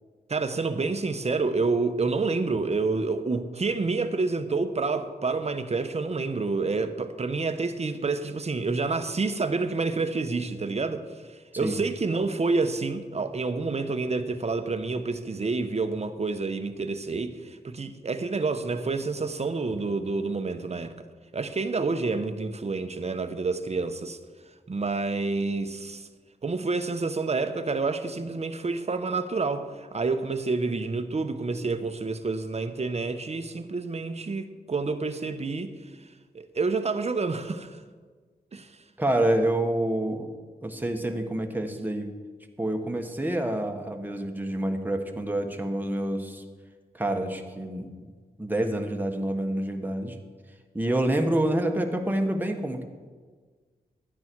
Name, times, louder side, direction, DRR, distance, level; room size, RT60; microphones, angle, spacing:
voice 1, 0.3-21.1 21.3-24.2 24.7-26.1 26.4-36.1 36.3-37.8 38.5-38.8, right 3 dB, 40° right, 8 dB, 1.0 m, -28 dB
voice 2, 39.0-40.3 40.6-42.1 42.6-46.4 46.9-47.9 48.4-50.1 50.7-52.8, right 1 dB, 10° right, 3 dB, 1.4 m, -27 dB
12.5 x 9.6 x 4.6 m, 1.5 s
cardioid pair, 60°, 17 cm